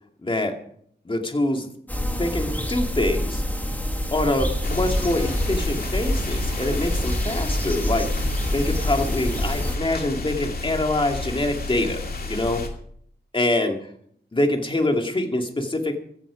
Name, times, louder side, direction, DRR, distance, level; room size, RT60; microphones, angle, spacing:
voice 1, 0.2-0.5 1.1-1.7 2.2-3.4 4.1-8.1 8.5-12.0 12.3-12.6 13.3-13.8 14.3-16.0, left 1 dB, 30° left, 4 dB, 2.3 m, -25 dB
sound 1, 1.9-9.8, equal, 10° left, 2.2 m, -26 dB
sound 2, 4.6-12.7, left 3 dB, 55° left, 2.5 m, -31 dB
15.5 x 14.0 x 5.1 m, 0.66 s
wide cardioid pair, 110°, 18 cm